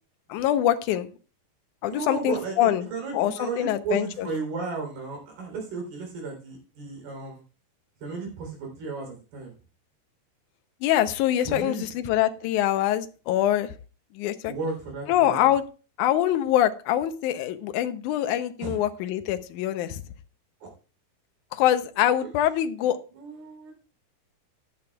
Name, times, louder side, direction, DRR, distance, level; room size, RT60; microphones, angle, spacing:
voice 1, 0.3-1.1 1.8-2.9 3.1-4.3 10.8-13.7 14.2-14.5 15.1-15.6 16.0-20.0 21.5-23.0, left 12 dB, 75° left, 9 dB, 1.9 m, -24 dB
voice 2, 1.9-7.4 8.0-9.5 11.5-11.9 14.5-15.5 18.6-18.8 20.6-20.7 23.2-23.7, right 4 dB, 90° right, 1 dB, 5.6 m, -34 dB
14.5 x 11.0 x 2.4 m, 0.36 s
omnidirectional pair, 4.3 m